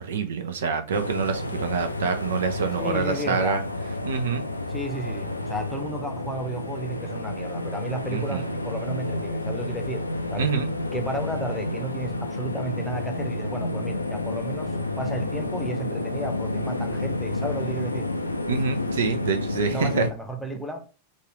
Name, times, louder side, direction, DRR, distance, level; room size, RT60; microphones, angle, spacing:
voice 1, 0.0-3.6 4.0-4.4 8.1-8.5 10.4-10.7 18.5-20.1, right 5 dB, 60° right, 0.5 m, -26 dB
sound 1, 0.9-20.1, left 2 dB, 85° left, 0.4 m, -30 dB
voice 2, 2.8-3.6 4.7-10.0 10.3-10.5 10.9-18.1 19.7-20.8, right 1 dB, 5° left, 0.8 m, -33 dB
4.0 x 2.5 x 4.7 m
figure-of-eight pair, 90°, 0 cm